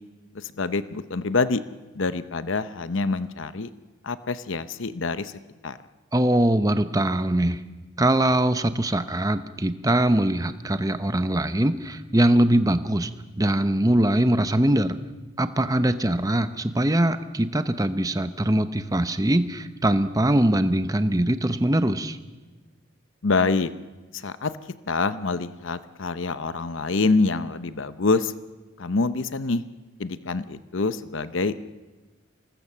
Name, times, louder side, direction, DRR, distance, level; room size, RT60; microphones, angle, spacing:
voice 1, 0.3-1.6 1.9-3.7 4.0-5.3 5.6-5.8 23.2-23.7 24.1-24.5 24.9-28.3 28.8-29.6 30.0-31.6, left 3 dB, 65° left, 13 dB, 0.8 m, -26 dB
voice 2, 6.1-7.6 8.0-13.1 13.4-15.0 15.4-22.2, right 1 dB, 15° right, 11 dB, 0.8 m, -22 dB
25.0 x 19.5 x 7.4 m, 1.2 s
head